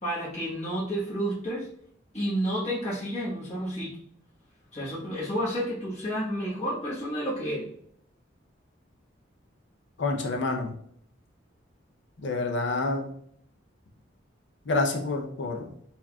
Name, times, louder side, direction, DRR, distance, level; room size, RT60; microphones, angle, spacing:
voice 1, 0.0-1.7 2.1-4.0 4.7-7.7, equal, 35° left, -8 dB, 1.1 m, -30 dB
voice 2, 10.0-10.7 12.2-13.1 14.7-15.7, left 3 dB, 70° left, 3 dB, 0.6 m, -28 dB
4.4 x 2.8 x 2.2 m, 0.67 s
head